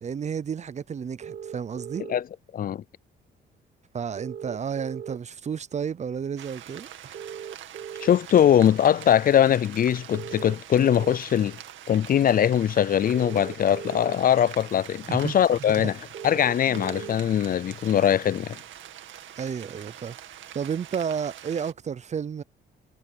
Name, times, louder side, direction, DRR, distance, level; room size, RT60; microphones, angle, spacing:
voice 1, 0.0-2.0 3.9-7.2 15.1-15.4 15.7-15.9 16.7-16.9 19.4-20.2 20.5-22.4, right 7 dB, 35° right, 0.5 m, -32 dB
sound 1, 1.2-2.2 4.2-5.2 7.1-8.2 10.1-11.2 13.1-14.2 16.1-17.2, right 8 dB, 55° right, 1.3 m, -38 dB
sound 2, 6.4-21.7, right 11 dB, 75° right, 2.2 m, -44 dB
voice 2, 8.0-11.6 11.9-16.0 16.2-18.6, left 9 dB, 45° left, 0.4 m, -21 dB
cardioid pair, 90°, 20 cm